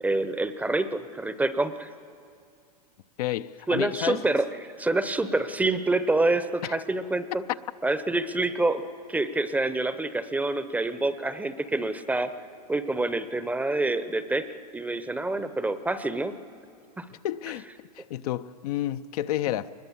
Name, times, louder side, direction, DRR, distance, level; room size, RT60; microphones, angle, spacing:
voice 1, 0.0-1.9 3.7-7.4 7.8-8.8 9.1-12.3 12.7-14.5 14.7-16.3 17.0-17.1, right 2 dB, 10° right, 0.7 m, -27 dB
voice 2, 3.2-4.2 6.6-6.8 17.2-19.7, left 13 dB, 65° left, 0.6 m, -31 dB
23.0 x 20.5 x 7.2 m
hypercardioid pair, 120°, 20 cm